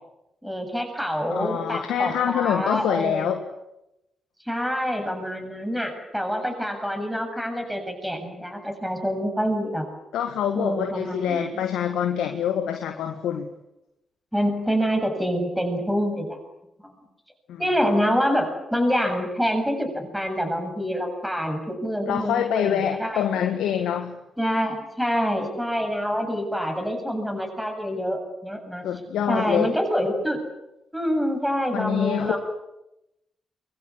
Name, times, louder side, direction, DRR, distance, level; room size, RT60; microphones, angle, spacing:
voice 1, 0.4-3.3 4.5-9.9 10.5-11.5 14.3-16.4 16.8-17.0 17.6-23.2 24.4-28.8 29.3-30.4 30.9-32.4, equal, 5° right, 4 dB, 7.5 m, -26 dB
voice 2, 1.3-3.4 10.1-13.5 17.5-17.6 22.1-24.2 28.8-29.7 31.7-32.4, left 9 dB, 75° left, 5 dB, 1.7 m, -25 dB
25.0 x 23.0 x 8.6 m, 0.90 s
hypercardioid pair, 45°, 0 cm